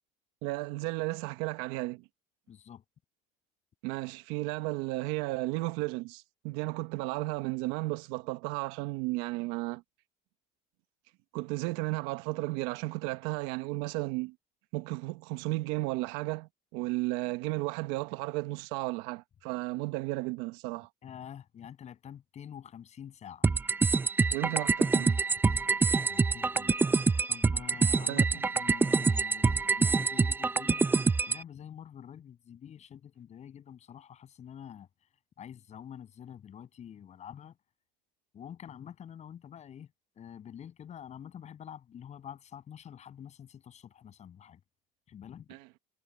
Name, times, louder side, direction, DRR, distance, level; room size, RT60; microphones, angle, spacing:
voice 1, 0.4-2.0 3.8-9.8 11.3-14.3 14.7-20.9 24.3-25.2 28.1-28.4 45.5-45.7, right 21 dB, 80° right, 1.0 m, -34 dB
voice 2, 2.5-2.8 21.0-23.5 26.1-26.7 27.3-34.9 35.4-37.6 38.3-44.6 45.1-45.5, left 9 dB, 35° left, 7.5 m, -47 dB
sound 1, 23.4-31.4, right 4 dB, 10° right, 0.4 m, -26 dB
cardioid pair, 125°, 19 cm